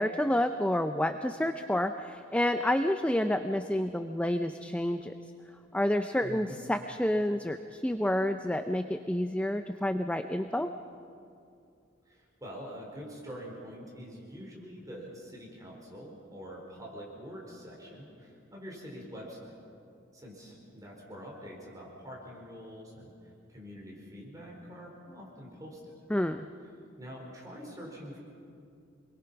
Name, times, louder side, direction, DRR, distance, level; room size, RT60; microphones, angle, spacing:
voice 1, 0.0-5.1 5.7-10.7 26.1-26.5, left 1 dB, 5° left, 8 dB, 0.5 m, -29 dB
voice 2, 6.2-6.6 12.1-19.5 20.1-23.1 23.5-25.9 27.0-28.2, equal, 20° right, -2 dB, 4.7 m, -45 dB
27.5 x 21.5 x 5.8 m, 2.5 s
head